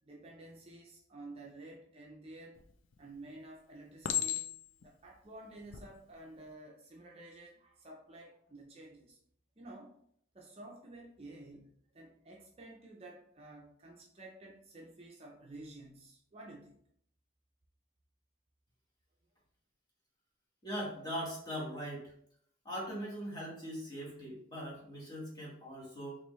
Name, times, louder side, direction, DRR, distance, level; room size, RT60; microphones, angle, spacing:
voice 1, 0.0-2.6 3.0-4.5 4.8-9.2 9.6-10.0 10.3-16.8, right 2 dB, 30° right, -1 dB, 0.5 m, -52 dB
Chink clink, 2.6-3.1 4.0-4.8 5.6-5.8, left 10 dB, 85° left, 0.4 m, -35 dB
voice 2, 20.6-22.1 22.6-26.2, equal, 20° left, -4 dB, 1.3 m, -40 dB
4.3 x 3.0 x 3.1 m, 0.66 s
head